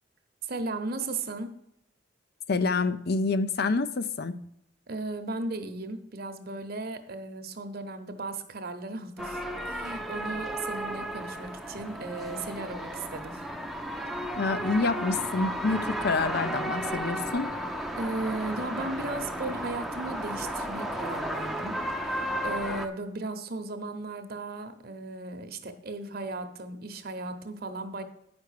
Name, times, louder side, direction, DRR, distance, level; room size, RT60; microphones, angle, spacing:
voice 1, 0.4-1.5 4.9-13.4 18.0-21.7 22.1-22.2 22.4-28.0, right 2 dB, 55° right, 8 dB, 1.0 m, -36 dB
voice 2, 2.5-4.4 14.4-17.5, left 3 dB, 60° left, 12 dB, 0.5 m, -27 dB
sound 1, 9.2-22.9, equal, ahead, 0.6 m, -34 dB
9.3 x 5.2 x 6.6 m, 0.74 s
head